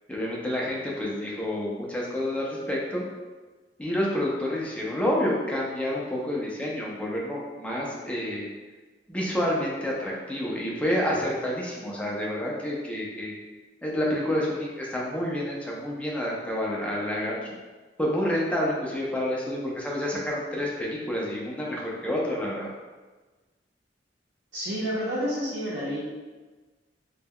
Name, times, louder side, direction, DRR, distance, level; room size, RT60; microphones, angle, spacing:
voice 1, 0.1-3.0 3.8-8.5 9.1-13.4 13.8-17.4 18.0-22.7, left 1 dB, 5° left, -4 dB, 0.5 m, -29 dB
voice 2, 24.5-26.0, equal, 75° right, -10 dB, 0.7 m, -29 dB
2.2 x 2.1 x 3.5 m, 1.3 s
head